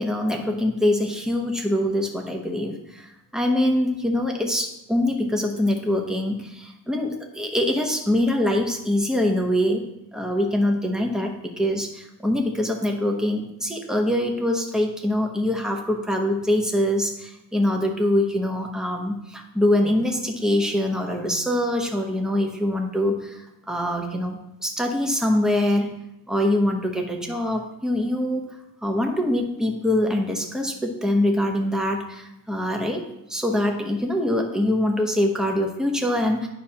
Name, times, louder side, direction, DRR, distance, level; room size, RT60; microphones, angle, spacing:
voice 1, 0.0-23.4 23.7-25.9 26.3-28.4 28.8-33.0 33.3-36.5, left 1 dB, ahead, 2 dB, 0.9 m, -24 dB
9.6 x 5.9 x 2.9 m, 0.86 s
wide cardioid pair, 115°, 38 cm